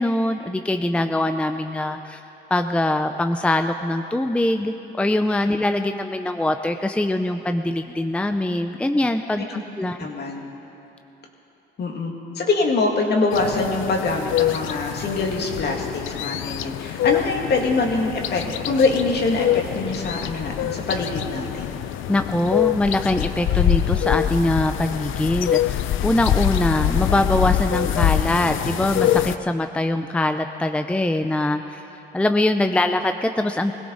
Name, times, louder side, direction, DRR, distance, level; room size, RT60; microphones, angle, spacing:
voice 1, 0.0-2.2 2.5-9.5 9.8-10.0 22.1-31.8 32.1-33.7, left 1 dB, 5° left, 7 dB, 0.5 m, -23 dB
voice 2, 10.0-10.5 11.8-21.8, left 3 dB, 55° left, 1 dB, 2.3 m, -24 dB
sound 1, 13.3-29.4, left 12 dB, 85° left, 0.5 m, -24 dB
21.5 x 16.5 x 4.0 m, 3.0 s
cardioid pair, 90°, 20 cm